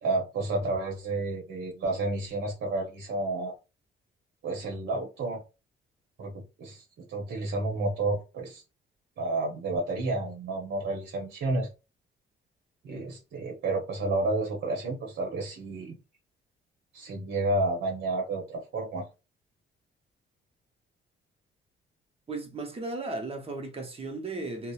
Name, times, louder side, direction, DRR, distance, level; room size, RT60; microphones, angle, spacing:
voice 1, 0.0-3.5 4.4-5.4 6.2-8.6 9.2-11.7 12.8-16.0 16.9-19.0, right 2 dB, 60° right, 0.9 m, -31 dB
voice 2, 22.3-24.7, right 2 dB, 30° right, 0.7 m, -35 dB
2.8 x 2.0 x 2.3 m
cardioid pair, 90°, 20 cm